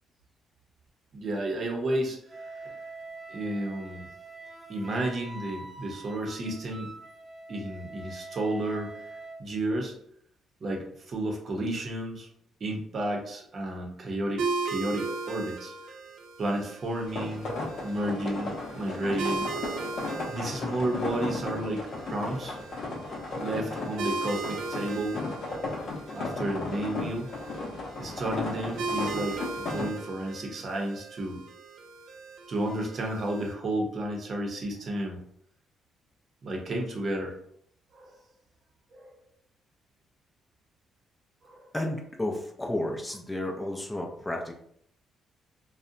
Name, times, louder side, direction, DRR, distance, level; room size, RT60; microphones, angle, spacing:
voice 1, 1.1-2.8 3.3-4.0 4.7-6.9 7.5-9.9 10.6-12.3 12.6-15.9 16.4-17.5 17.8-19.5 20.3-22.6 23.4-25.2 26.1-27.3 28.0-31.4 32.5-35.2 36.4-37.4 37.9-38.2 38.9-39.1 41.4-41.7, right 1 dB, 45° right, 1 dB, 0.7 m, -32 dB
Wind instrument woodwind instrument, 2.3-9.4, right 3 dB, 10° right, 0.8 m, -44 dB
sound 1, 14.4-33.5, right 4 dB, 80° right, 0.3 m, -38 dB
sound 2, 17.1-29.9, left 3 dB, 60° left, 0.6 m, -35 dB
voice 2, 41.7-44.5, left 1 dB, 15° left, 1 dB, 0.4 m, -32 dB
2.6 x 2.1 x 2.5 m, 0.67 s
cardioid pair, 90°, 0 cm